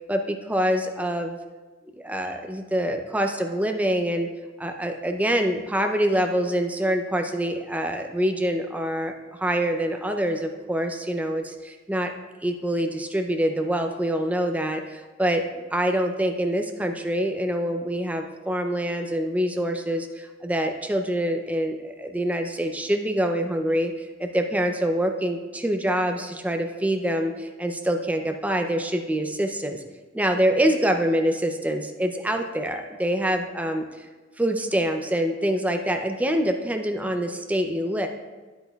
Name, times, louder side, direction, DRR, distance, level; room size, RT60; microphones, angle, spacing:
voice 1, 0.1-1.4 1.9-4.3 4.6-12.1 12.4-15.4 15.7-29.8 30.1-34.1 34.4-38.1, equal, 10° right, 5 dB, 0.5 m, -25 dB
9.8 x 8.1 x 2.3 m, 1.3 s
head